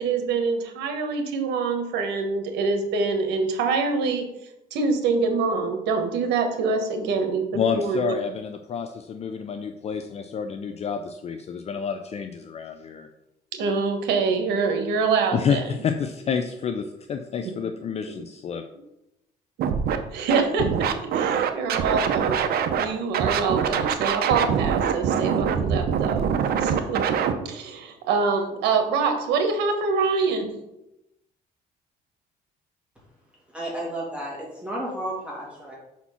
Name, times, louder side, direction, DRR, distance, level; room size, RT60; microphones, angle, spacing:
voice 1, 0.0-4.3 4.7-8.1 13.5-15.7 18.1-18.2 20.1-22.5 22.7-26.2 26.6-27.0 27.4-30.5, right 4 dB, 85° right, 5 dB, 1.3 m, -25 dB
voice 2, 7.5-13.1 15.3-18.6, left 6 dB, 40° left, 7 dB, 0.5 m, -29 dB
Scratching (performance technique), 19.6-20.0 20.3-22.8 23.1-27.3, right 7 dB, 65° right, 0.7 m, -24 dB
voice 3, 33.5-35.7, right 1 dB, 5° right, -5 dB, 2.7 m, -32 dB
5.8 x 4.3 x 5.7 m, 0.89 s
cardioid pair, 110°, 17 cm